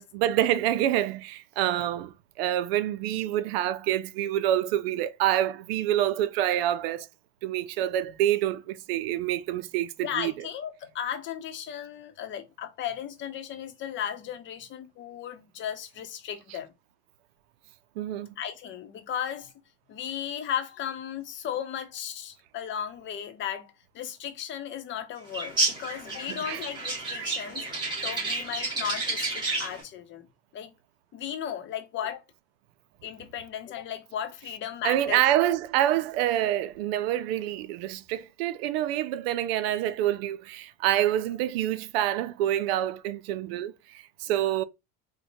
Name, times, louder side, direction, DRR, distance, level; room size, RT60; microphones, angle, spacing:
voice 1, 0.0-7.1 7.4-10.3 18.0-18.3 26.3-26.6 34.8-44.6, right 12 dB, 80° right, 0.5 m, -27 dB
voice 2, 10.0-16.7 18.4-19.5 19.9-30.3 30.5-30.7 31.1-32.2 33.0-35.2, left 9 dB, 40° left, 0.7 m, -35 dB
sound 1, 25.3-29.8, right 3 dB, 15° right, 2.0 m, -30 dB
4.2 x 2.2 x 2.6 m
supercardioid pair, 115°, 30 cm